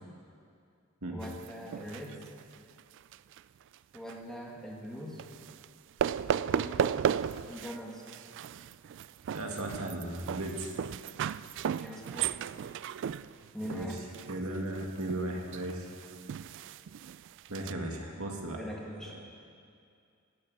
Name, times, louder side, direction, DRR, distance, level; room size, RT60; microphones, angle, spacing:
voice 1, 1.1-2.1 3.9-5.2 6.5-7.1 7.5-8.1 11.8-12.4 13.5-14.0 18.6-19.2, equal, ahead, -3 dB, 2.1 m, -42 dB
sound 1, 1.2-3.4 3.7-4.1 5.2-5.7 6.0-7.8 8.1-17.7, right 8 dB, 60° right, 0.3 m, -35 dB
voice 2, 9.3-10.7 13.6-13.9 14.3-15.9 17.5-18.6, right 1 dB, 75° right, 1 dB, 2.1 m, -36 dB
17.0 x 9.4 x 8.0 m, 2.4 s
head